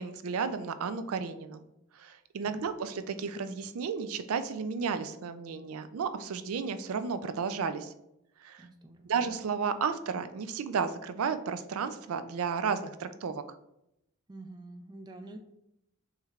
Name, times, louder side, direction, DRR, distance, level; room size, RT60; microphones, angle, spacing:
voice 1, 0.0-1.6 1.9-7.9 8.4-8.7 9.0-13.4, right 5 dB, 85° right, 11 dB, 0.4 m, -33 dB
voice 2, 8.6-9.2 14.3-15.4, right 2 dB, 20° right, 6 dB, 0.4 m, -47 dB
6.2 x 3.2 x 2.4 m, 0.83 s
head